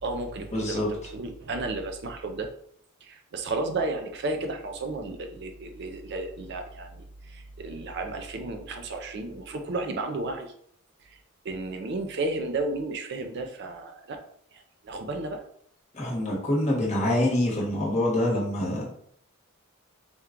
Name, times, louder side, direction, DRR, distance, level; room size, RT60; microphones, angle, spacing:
voice 1, 0.0-2.5 3.0-10.5 11.4-14.2 14.5-15.4, right 2 dB, 50° right, 5 dB, 0.4 m, -33 dB
voice 2, 0.5-0.9 15.9-18.8, left 1 dB, 30° left, -3 dB, 1.1 m, -25 dB
4.3 x 2.3 x 3.7 m, 0.65 s
head